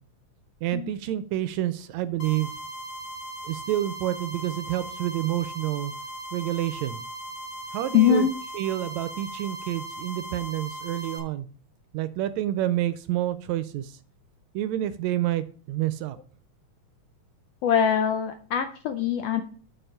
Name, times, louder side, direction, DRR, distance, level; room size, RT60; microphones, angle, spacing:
voice 1, 0.6-2.5 3.4-5.9 6.3-7.0 7.7-8.3 8.5-11.5 11.9-13.9 14.5-16.2, right 13 dB, 80° right, 13 dB, 1.7 m, -28 dB
sound 1, 2.2-11.2, right 1 dB, 60° left, 1.0 m, -38 dB
voice 2, 7.9-8.3 17.6-19.4, left 9 dB, 75° left, 7 dB, 1.5 m, -23 dB
7.9 x 4.7 x 5.5 m, 0.42 s
omnidirectional pair, 3.4 m